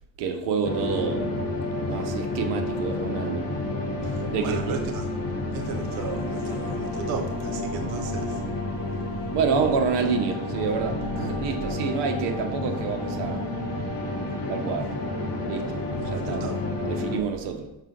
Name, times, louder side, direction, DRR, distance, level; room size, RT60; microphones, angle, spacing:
voice 1, 0.2-1.4 1.9-3.5 4.2-4.8 9.3-13.4 14.5-14.9 15.5-16.4 16.9-17.7, right 5 dB, 65° right, 1.1 m, -28 dB
sound 1, 0.6-17.2, left 2 dB, 30° left, 1.0 m, -30 dB
voice 2, 4.0-5.1 5.5-8.4 16.0-16.6, right 8 dB, 40° right, 0.4 m, -35 dB
5.6 x 5.5 x 3.8 m
cardioid pair, 170°, 46 cm